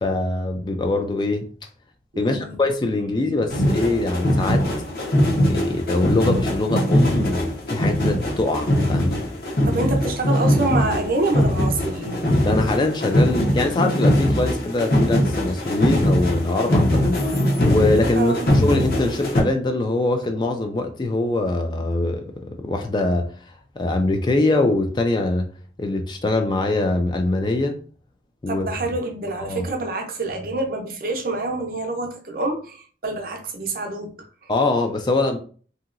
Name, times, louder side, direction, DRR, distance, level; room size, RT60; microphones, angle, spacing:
voice 1, 0.0-1.5 2.2-4.7 5.5-9.2 12.4-17.4 17.7-23.3 23.8-25.5 25.8-27.8 28.4-28.7 29.4-29.6 34.5-35.4, left 2 dB, 25° left, 0.3 m, -23 dB
voice 2, 2.1-2.5 9.7-12.3 18.2-18.5 28.5-34.1 34.4-34.5, right 2 dB, 55° right, 0.6 m, -26 dB
sound 1, 3.5-19.4, equal, 55° left, 0.8 m, -21 dB
2.9 x 2.8 x 2.5 m
head